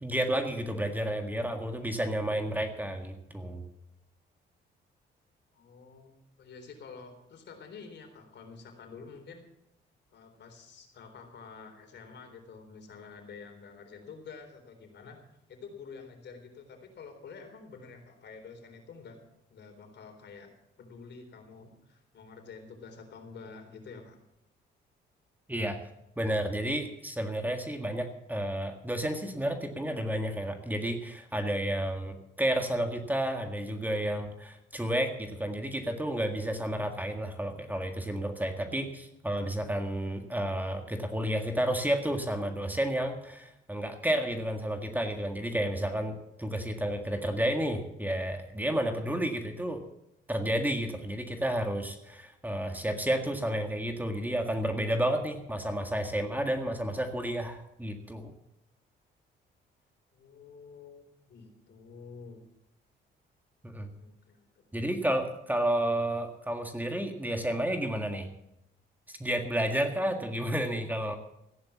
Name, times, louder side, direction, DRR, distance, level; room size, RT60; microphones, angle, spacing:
voice 1, 0.0-3.6 25.5-25.8 26.2-49.8 50.3-58.3 63.6-63.9 64.7-68.3 69.1-71.2, right 1 dB, 10° right, 5 dB, 1.7 m, -31 dB
voice 2, 5.5-9.4 10.1-15.2 15.5-19.2 19.5-20.5 20.8-24.2 60.1-61.0 61.3-62.4 64.0-64.6, left 5 dB, 60° left, 5 dB, 3.9 m, -48 dB
15.0 x 10.5 x 7.2 m, 0.84 s
cardioid pair, 90°, 20 cm